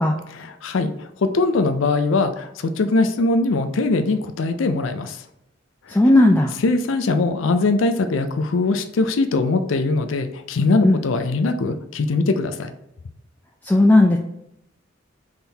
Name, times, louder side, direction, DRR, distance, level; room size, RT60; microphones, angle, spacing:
voice 1, 0.3-5.2 5.9-6.0 6.6-12.7, left 3 dB, 80° left, 8 dB, 0.4 m, -21 dB
voice 2, 5.9-6.5 10.8-11.0 13.6-14.2, left 1 dB, 10° left, 1 dB, 0.3 m, -15 dB
3.6 x 3.4 x 4.2 m, 0.83 s
head